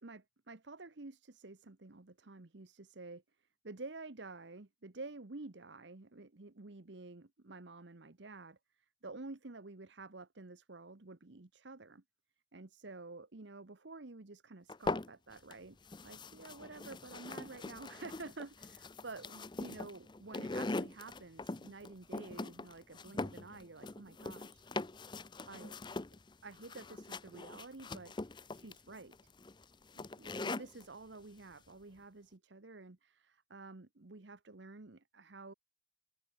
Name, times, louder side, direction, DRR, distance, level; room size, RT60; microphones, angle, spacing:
voice 1, 0.0-3.2 3.6-12.0 12.5-15.8 16.0-24.7 25.5-25.8 26.4-28.1 28.5-29.1 29.9-35.5, right 3 dB, 65° right, 1.1 m, -50 dB
sound 1, 14.7-15.5 15.9-30.9, left 2 dB, 25° left, 0.6 m, -42 dB
open air
head